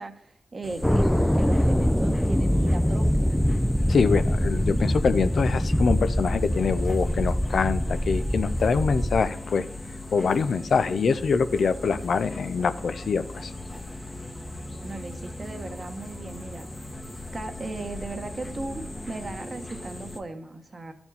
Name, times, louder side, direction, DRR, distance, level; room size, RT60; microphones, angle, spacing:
voice 1, 0.0-3.4 14.8-16.7 17.3-20.9, right 2 dB, 50° right, 6 dB, 1.1 m, -37 dB
sound 1, 0.6-20.2, left 1 dB, 25° left, 0.9 m, -40 dB
sound 2, 0.8-9.2, equal, 10° left, 0.4 m, -24 dB
voice 2, 3.9-9.7 10.1-13.5, left 5 dB, 80° left, 12 dB, 0.4 m, -24 dB
sound 3, 6.3-18.9, left 2 dB, 55° left, 2.0 m, -44 dB
12.5 x 4.4 x 4.1 m, 0.75 s
cardioid pair, 50°, 0 cm